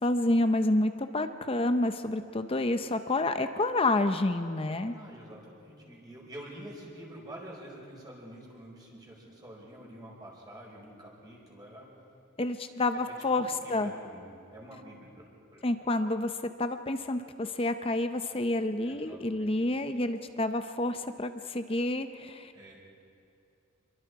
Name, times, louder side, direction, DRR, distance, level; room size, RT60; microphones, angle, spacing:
voice 1, 0.0-4.9 12.4-13.9 15.6-16.3 16.6-22.5, left 2 dB, 25° left, 8 dB, 0.7 m, -29 dB
voice 2, 4.7-11.9 12.9-14.2 14.5-15.6 18.8-19.5 22.5-22.7, right 1 dB, 20° right, -2 dB, 5.0 m, -47 dB
27.5 x 22.5 x 4.8 m, 2.7 s
head